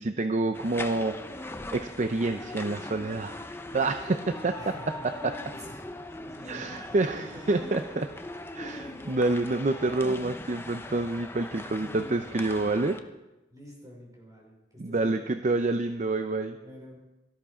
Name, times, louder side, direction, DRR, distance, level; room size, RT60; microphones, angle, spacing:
voice 1, 0.0-3.4 3.7-4.6 5.0-5.3 6.4-8.1 8.6-13.0 14.8-16.6, right 2 dB, 45° right, 8 dB, 0.6 m, -28 dB
sound 1, 0.5-13.0, left 2 dB, 15° left, 0.8 m, -40 dB
voice 2, 4.3-5.0 5.5-5.8 6.1-8.3 8.6-9.2 11.6-12.1 13.5-15.2 16.6-17.0, equal, 20° right, -2 dB, 5.4 m, -47 dB
18.0 x 13.5 x 5.0 m, 1.0 s
head